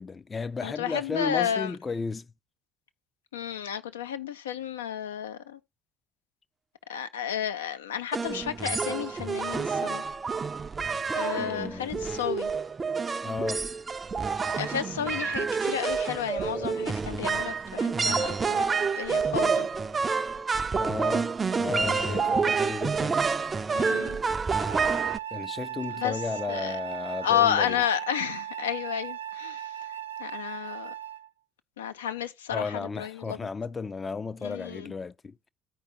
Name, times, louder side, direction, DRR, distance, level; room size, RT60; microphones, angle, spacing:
voice 1, 0.0-2.3 11.4-11.9 13.2-13.6 20.7-23.2 25.3-27.8 32.5-35.5, left 4 dB, 30° left, 0.5 m, -34 dB
voice 2, 0.6-1.7 3.3-5.6 6.9-10.1 11.1-12.5 14.6-19.7 21.5-22.4 23.7-24.2 25.9-26.2 26.5-26.8 27.2-29.8 30.2-30.9 31.8-33.4 34.4-34.9, left 9 dB, 80° left, 0.5 m, -32 dB
sound 1, 8.1-25.2, right 5 dB, 30° right, 0.5 m, -28 dB
Wind instrument woodwind instrument, 24.5-31.3, right 11 dB, 85° right, 0.5 m, -37 dB
14.0 x 5.0 x 2.6 m
figure-of-eight pair, 55°, 0 cm